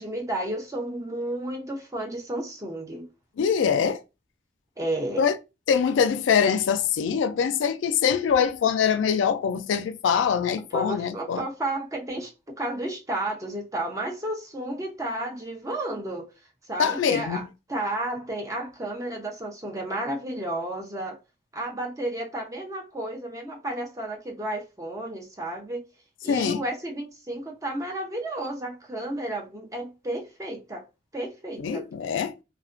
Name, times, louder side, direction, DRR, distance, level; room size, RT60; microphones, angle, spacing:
voice 1, 0.0-3.1 4.8-5.3 10.7-12.3 12.6-16.3 16.7-17.4 17.7-21.2 21.5-25.8 26.2-30.8 31.1-31.8, right 1 dB, 15° right, 0.5 m, -32 dB
voice 2, 3.4-4.0 5.2-5.4 5.7-11.4 16.8-17.5 26.3-26.6 31.6-32.4, left 7 dB, 80° left, 0.3 m, -23 dB
2.4 x 2.1 x 2.4 m
head